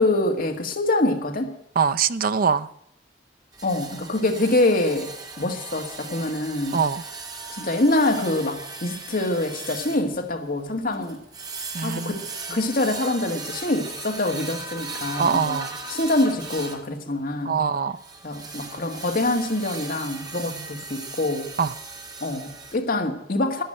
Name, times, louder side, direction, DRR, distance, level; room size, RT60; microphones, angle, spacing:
voice 1, 0.0-1.6 3.6-6.8 7.5-11.2 11.8-12.2 12.5-15.6 15.9-17.6 18.2-21.5 22.2-23.6, left 2 dB, 50° left, 1.8 m, -25 dB
voice 2, 1.8-2.7 6.7-7.0 11.7-12.1 15.2-15.8 17.4-17.9 21.6-21.7, right 6 dB, 50° right, 0.6 m, -23 dB
sound 1, 3.5-16.9 18.0-22.8, right 3 dB, 20° right, 2.0 m, -38 dB
11.5 x 11.0 x 8.7 m
head